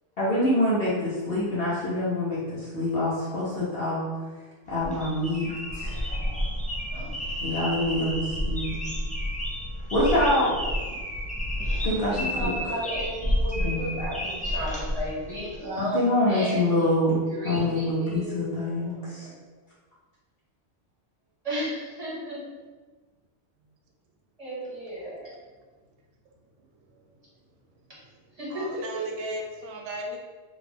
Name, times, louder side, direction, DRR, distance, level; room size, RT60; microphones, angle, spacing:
voice 1, 0.2-4.0 4.7-6.0 7.4-8.7 9.9-10.6 11.8-12.5 13.6-13.8 15.8-17.2 17.4-19.3, left 1 dB, 55° left, -8 dB, 1.0 m, -25 dB
sound 1, 4.7-15.6, equal, 15° left, 0.3 m, -30 dB
voice 2, 6.9-7.2 12.1-16.9 17.3-19.4 21.4-22.4 24.4-25.3 28.4-29.0, equal, 30° right, -9 dB, 1.5 m, -34 dB
voice 3, 28.5-30.2, equal, 90° right, 1 dB, 0.9 m, -37 dB
3.6 x 2.4 x 3.4 m, 1.4 s
omnidirectional pair, 1.2 m